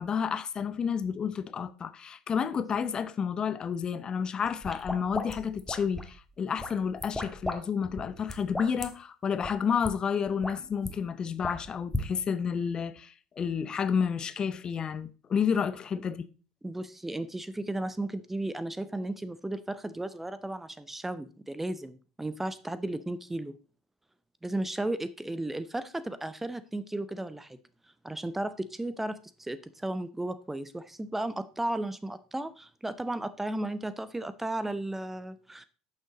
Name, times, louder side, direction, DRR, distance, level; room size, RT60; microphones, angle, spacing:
voice 1, 0.0-16.3, left 7 dB, 30° left, 0.7 m, -30 dB
sound 1, 4.5-6.2 6.6-7.6 7.8-8.9 9.4-9.5 9.8-9.9 10.3-10.9 11.4-12.1, left 1 dB, 5° left, 1.6 m, -35 dB
voice 2, 16.6-23.5 24.4-27.6 28.0-35.6, right 1 dB, 10° right, 0.7 m, -34 dB
11.0 x 6.4 x 4.0 m
figure-of-eight pair, 65°, 3 cm